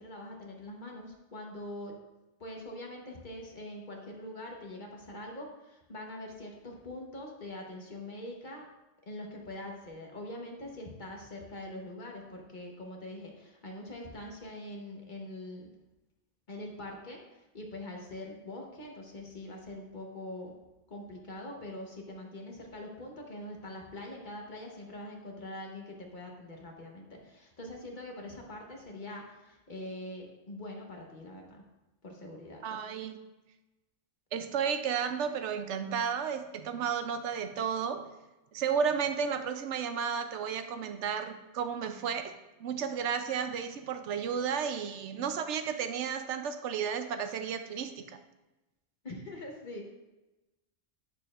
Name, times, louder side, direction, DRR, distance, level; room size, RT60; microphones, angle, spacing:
voice 1, 0.0-2.0 2.4-8.7 9.0-15.7 16.5-17.2 17.5-20.5 20.9-31.6 32.0-32.6 49.0-49.9, left 1 dB, 45° left, 0 dB, 1.2 m, -43 dB
voice 2, 32.6-33.2 34.3-38.0 38.5-42.3 42.6-48.1, right 7 dB, 75° right, 8 dB, 0.9 m, -33 dB
8.7 x 6.8 x 2.4 m, 1.0 s
omnidirectional pair, 1.2 m